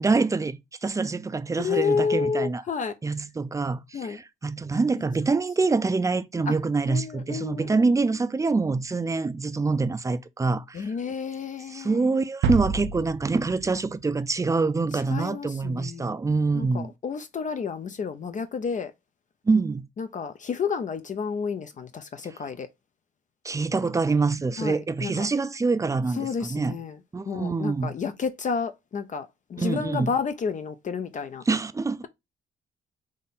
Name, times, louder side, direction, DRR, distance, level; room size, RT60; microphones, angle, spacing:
voice 1, 0.0-2.6 3.0-10.9 11.7-16.9 19.5-19.8 23.4-26.8 27.1-27.9 29.6-30.1 31.5-32.1, right 4 dB, 15° right, 0.4 m, -25 dB
voice 2, 1.6-2.9 3.9-4.2 6.5-6.6 6.9-7.8 10.7-12.0 15.1-16.2 16.5-18.9 20.0-22.7 24.6-25.3 26.1-27.0 27.3-31.4, left 6 dB, 40° left, 0.5 m, -30 dB
sound 1, 12.4-14.5, right 5 dB, 75° right, 0.6 m, -29 dB
3.6 x 2.5 x 4.0 m
cardioid pair, 90°, 20 cm